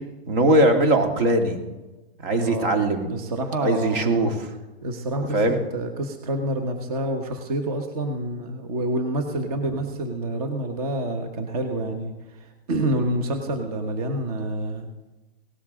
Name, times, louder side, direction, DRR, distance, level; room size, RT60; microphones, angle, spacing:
voice 1, 0.3-1.6 2.2-3.1 3.6-4.5 5.3-5.6, right 1 dB, 55° right, 4 dB, 2.5 m, -20 dB
voice 2, 2.3-2.8 3.1-4.3 4.8-14.9, right 1 dB, 35° right, 5 dB, 1.3 m, -28 dB
18.0 x 13.0 x 3.7 m, 1.1 s
hypercardioid pair, 170°, 32 cm